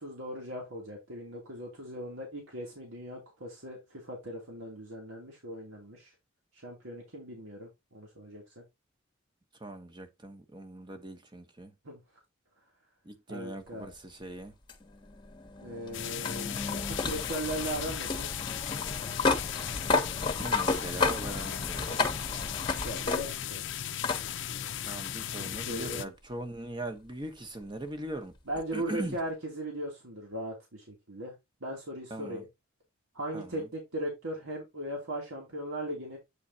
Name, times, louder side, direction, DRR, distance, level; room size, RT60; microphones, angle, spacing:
voice 1, 0.0-6.1 6.5-8.6 11.8-12.0 13.3-13.9 15.6-18.3 22.3-23.8 25.4-26.1 28.5-31.4 31.6-32.5 33.1-36.2, right 1 dB, 85° right, 2.5 m, -38 dB
voice 2, 9.6-11.7 13.0-14.5 20.3-22.0 24.8-28.4 28.7-29.2 32.1-32.4 33.3-33.7, right 1 dB, 20° right, 1.0 m, -40 dB
sound 1, 14.7-23.6 24.0-24.2 25.6-25.7 28.5-28.6, left 3 dB, 20° left, 1.1 m, -32 dB
sound 2, 15.9-26.1, left 10 dB, 60° left, 0.6 m, -37 dB
8.5 x 3.9 x 4.0 m
head